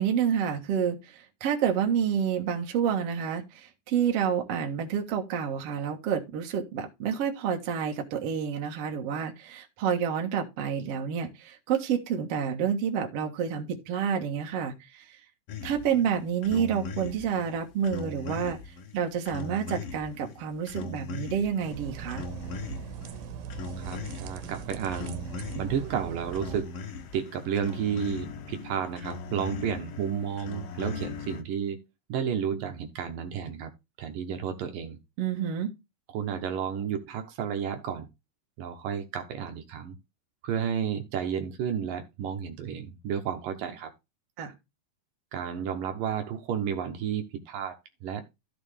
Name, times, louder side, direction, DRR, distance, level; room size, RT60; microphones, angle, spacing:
voice 1, 0.0-15.2 15.6-18.6 18.9-22.3 35.2-35.7 44.4-44.5, right 8 dB, 50° right, 2.2 m, -29 dB
sound 1, 15.5-31.4, left 4 dB, 65° left, 1.5 m, -40 dB
sound 2, 21.6-26.6, right 7 dB, 85° right, 2.7 m, -40 dB
voice 2, 23.8-25.2 25.6-26.7 27.1-31.8 32.1-33.7 34.0-35.0 36.1-38.1 38.6-40.0 40.4-43.9 45.3-48.2, right 8 dB, 70° right, 2.7 m, -32 dB
14.5 x 4.9 x 3.3 m
omnidirectional pair, 4.2 m